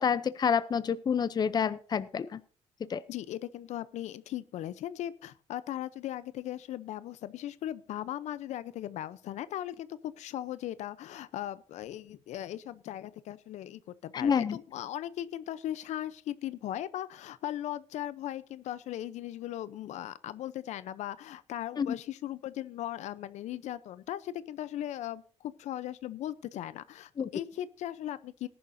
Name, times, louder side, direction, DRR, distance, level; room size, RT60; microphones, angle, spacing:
voice 1, 0.0-2.4 2.9-3.0 14.1-14.6 21.8-21.9 27.2-27.3, left 7 dB, 35° left, 15 dB, 0.6 m, -28 dB
voice 2, 3.1-28.5, left 12 dB, 80° left, 15 dB, 0.8 m, -38 dB
18.5 x 11.0 x 2.7 m, 0.42 s
cardioid pair, 125°, 12 cm